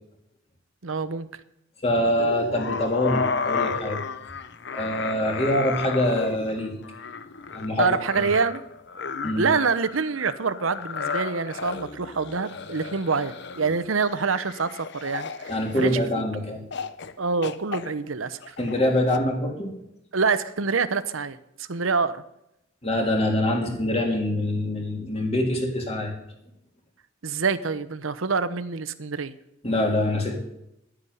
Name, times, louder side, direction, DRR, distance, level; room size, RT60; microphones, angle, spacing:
voice 1, 0.8-1.3 7.8-8.6 9.4-15.5 15.8-16.0 17.2-18.5 20.1-22.2 27.2-29.3, right 4 dB, 85° right, 12 dB, 0.9 m, -26 dB
voice 2, 1.8-4.0 4.7-6.7 7.5-8.3 9.2-9.5 15.5-16.6 18.6-19.7 22.8-26.1 29.6-30.4, left 1 dB, 30° left, 1 dB, 3.2 m, -24 dB
sound 1, 2.2-16.2 16.7-17.1 17.4-19.2, left 5 dB, 60° left, 0.8 m, -33 dB
11.5 x 9.7 x 9.3 m, 0.83 s
head